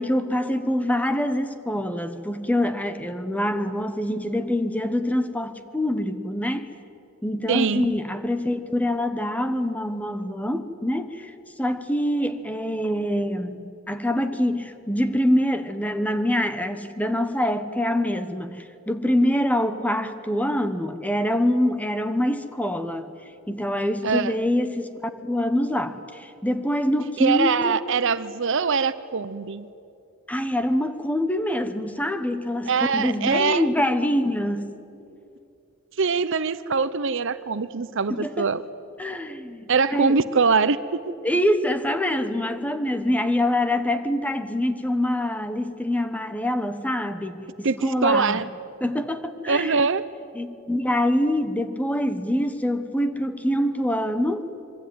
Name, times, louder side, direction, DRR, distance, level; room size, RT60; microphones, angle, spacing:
voice 1, 0.0-6.7 7.2-11.3 11.6-23.1 23.5-27.8 30.3-34.7 38.1-38.5 39.0-40.2 41.2-48.4 48.8-49.8 50.3-54.5, left 1 dB, 5° left, 1.2 m, -25 dB
voice 2, 7.5-7.9 24.0-24.4 27.2-29.7 32.7-33.7 36.0-38.6 39.7-40.8 47.6-48.5 49.5-50.0, right 5 dB, 60° right, 0.8 m, -23 dB
26.0 x 23.0 x 9.5 m
head